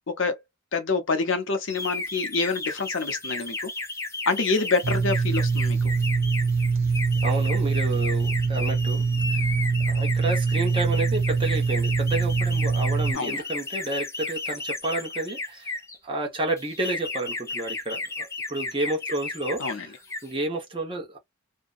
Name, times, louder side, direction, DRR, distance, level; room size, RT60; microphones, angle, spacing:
voice 1, 0.1-0.4 0.7-3.6 4.3-5.9 13.1-13.3 19.6-19.9, left 4 dB, 60° left, 0.6 m, -26 dB
sound 1, 1.7-16.0 16.6-19.8 20.0-20.3, left 3 dB, 10° left, 0.4 m, -34 dB
sound 2, 4.8-13.1, right 4 dB, 65° right, 0.6 m, -24 dB
voice 2, 7.2-9.5 9.9-15.7 16.0-19.9 20.2-21.2, right 2 dB, 25° right, 0.9 m, -30 dB
2.6 x 2.2 x 2.3 m
head